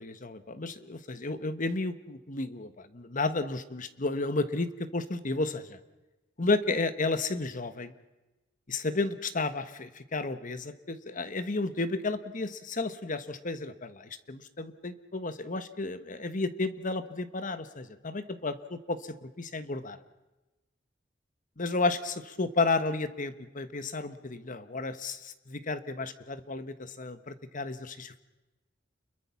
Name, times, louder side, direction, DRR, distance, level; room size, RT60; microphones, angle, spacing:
voice 1, 0.0-5.8 6.4-7.9 8.7-20.0 21.6-28.2, left 3 dB, 45° left, 12 dB, 1.3 m, -32 dB
29.0 x 22.0 x 5.9 m, 1.1 s
head